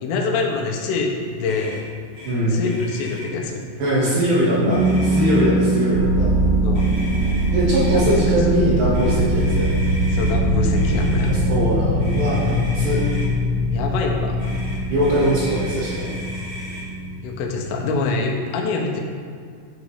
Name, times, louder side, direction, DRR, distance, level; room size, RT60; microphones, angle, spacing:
voice 1, 0.0-1.9 2.5-3.6 6.6-6.9 7.9-8.0 8.5-8.7 10.1-11.4 13.7-14.4 17.2-19.0, left 4 dB, 80° left, 1 dB, 3.3 m, -25 dB
sound 1, 0.9-18.1, right 1 dB, 60° left, 1.8 m, -27 dB
Motor vehicle (road), 1.4-1.8 2.1-2.3 2.6-3.3 4.0-4.4 4.7-5.6 6.7-8.2 8.9-10.3 10.7-11.3 12.0-13.3 14.4-16.8, equal, 45° right, 1.8 m, -38 dB
voice 2, 2.2-2.6 3.8-6.3 7.5-9.7 11.2-13.0 14.9-16.1, equal, 60° right, -8 dB, 2.7 m, -21 dB
sound 2, 5.9-17.4, right 1 dB, 85° right, 3.7 m, -22 dB
10.5 x 6.3 x 3.3 m, 2.2 s
omnidirectional pair, 6.0 m